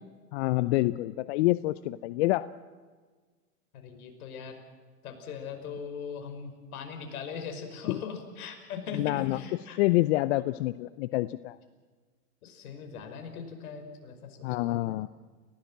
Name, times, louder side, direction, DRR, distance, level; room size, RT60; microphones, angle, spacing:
voice 1, 0.3-2.5 7.9-8.0 8.9-9.4 9.8-11.6 14.4-15.1, left 18 dB, 45° left, 16 dB, 0.6 m, -27 dB
voice 2, 3.7-4.6 5.0-9.8 12.4-15.0, left 6 dB, 65° left, 6 dB, 5.2 m, -40 dB
29.5 x 16.5 x 7.5 m, 1.5 s
hypercardioid pair, 110°, 47 cm